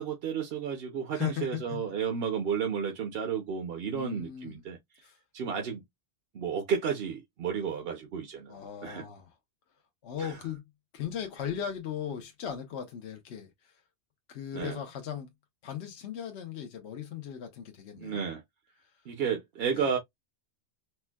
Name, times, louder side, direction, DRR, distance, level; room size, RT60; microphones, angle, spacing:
voice 1, 0.0-4.8 5.3-5.8 6.3-9.0 10.2-10.4 14.5-14.8 18.0-18.4 19.1-20.0, right 7 dB, 60° right, 0.9 m, -32 dB
voice 2, 1.1-1.8 3.9-4.6 5.0-5.2 8.5-9.4 10.0-10.6 10.9-13.8 14.3-15.3 15.6-18.3 18.8-19.0 19.7-19.9, left 9 dB, 70° left, 1.0 m, -38 dB
4.4 x 2.1 x 2.2 m
omnidirectional pair, 1.2 m